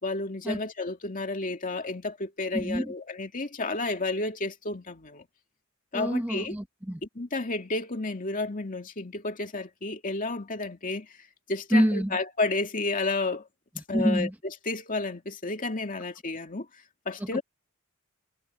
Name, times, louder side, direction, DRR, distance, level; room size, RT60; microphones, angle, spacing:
voice 1, 0.0-5.3 5.9-6.5 7.2-11.2 11.5-13.5 13.9-14.3 14.7-16.7 17.1-17.4, left 3 dB, 40° left, 2.3 m, -31 dB
voice 2, 2.5-2.9 5.9-7.0 11.7-12.2 13.8-14.3 17.2-17.4, equal, 10° right, 0.8 m, -27 dB
head